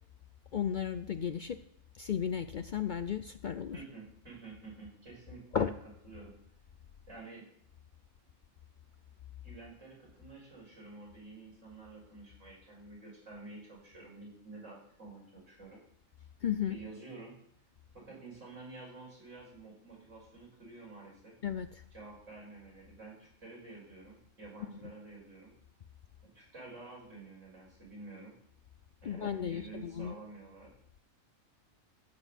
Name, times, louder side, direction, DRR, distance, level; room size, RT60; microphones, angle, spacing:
voice 1, 0.5-1.6 1.9-3.8 5.5-5.7 16.4-16.8 21.4-21.8 29.0-30.1, left 8 dB, 60° left, 10 dB, 0.5 m, -34 dB
voice 2, 3.7-5.7 6.0-6.3 7.1-7.4 9.4-15.8 16.7-17.3 17.9-21.3 21.9-25.5 26.3-28.3 29.0-30.7, right 3 dB, 60° right, -3 dB, 5.9 m, -50 dB
15.0 x 6.3 x 8.0 m, 0.67 s
omnidirectional pair, 1.4 m